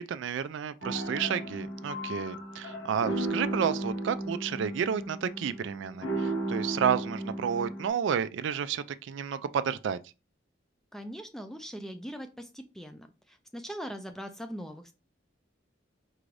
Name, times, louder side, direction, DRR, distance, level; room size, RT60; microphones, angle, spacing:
voice 1, 0.0-10.0, right 7 dB, 75° right, 0.3 m, -31 dB
sound 1, 0.8-7.9, right 1 dB, 80° left, 1.0 m, -35 dB
voice 2, 10.9-14.9, equal, ahead, 0.4 m, -41 dB
4.6 x 2.5 x 3.2 m
head